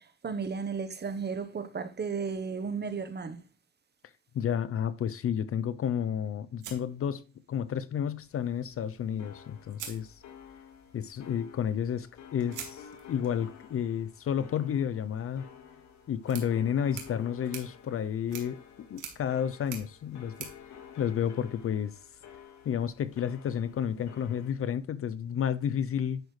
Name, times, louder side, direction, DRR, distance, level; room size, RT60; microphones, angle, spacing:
voice 1, 0.0-3.4, right 5 dB, 35° right, 1.0 m, -34 dB
voice 2, 4.3-10.2 10.9-15.4 16.1-18.6 18.9-20.5 21.0-22.0 22.7-26.2, left 8 dB, 50° left, 0.5 m, -31 dB
sound 1, 6.6-7.7 9.1-9.2 9.7-10.7 12.5-21.7, right 7 dB, 90° right, 2.3 m, -48 dB
sound 2, 8.2-24.5, left 8 dB, 70° left, 1.7 m, -51 dB
10.5 x 6.3 x 3.2 m
cardioid pair, 90°, 30 cm